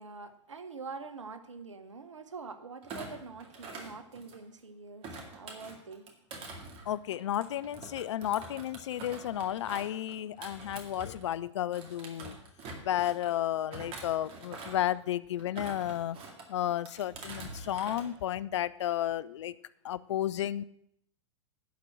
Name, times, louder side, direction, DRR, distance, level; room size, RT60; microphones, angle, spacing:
voice 1, 0.0-6.1, right 4 dB, 85° right, 11 dB, 0.9 m, -45 dB
Thump thud, 2.8-4.6 5.0-11.4 11.7-13.3 13.7-14.9 15.4-16.5 16.9-18.1 18.4-18.7, right 3 dB, 40° right, 2.2 m, -45 dB
voice 2, 6.9-12.4 12.8-16.2 16.5-19.5 19.8-20.6, left 12 dB, 70° left, 18 dB, 0.5 m, -32 dB
11.0 x 4.5 x 7.5 m, 0.73 s
hypercardioid pair, 100°, 15 cm